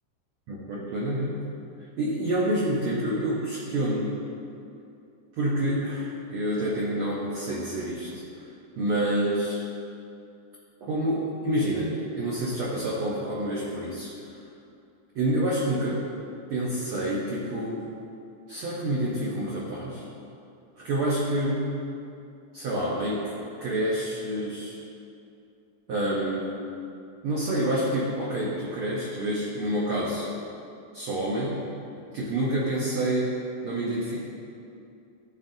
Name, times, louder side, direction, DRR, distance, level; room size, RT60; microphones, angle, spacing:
voice 1, 0.5-1.4 2.0-4.1 5.4-8.2 8.8-9.6 10.8-14.4 15.1-16.0 16.5-17.9 18.5-20.0 20.8-21.6 22.5-24.8 25.9-26.4 27.2-30.3 30.9-31.6 32.1-33.3 33.6-34.3, right 1 dB, 85° right, -6 dB, 1.1 m, -28 dB
11.0 x 4.1 x 2.6 m, 2.6 s
omnidirectional pair, 3.5 m